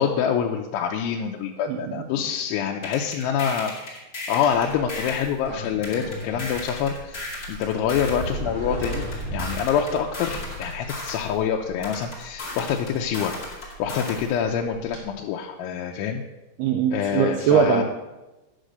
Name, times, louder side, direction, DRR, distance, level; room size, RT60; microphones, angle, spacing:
voice 1, 0.0-3.7 4.3-13.3 13.8-16.2 16.9-17.8, left 8 dB, 85° left, 1 dB, 3.0 m, -26 dB
voice 2, 1.7-2.2 16.6-17.8, right 7 dB, 80° right, 4 dB, 2.4 m, -22 dB
sound 1, 2.8-5.3 5.8-8.3 8.8-11.3 11.8-14.3, left 2 dB, 30° left, 1.9 m, -35 dB
Sliding door, 4.6-15.0, equal, 25° right, 3.0 m, -37 dB
11.0 x 6.6 x 6.3 m, 1.0 s
omnidirectional pair, 5.3 m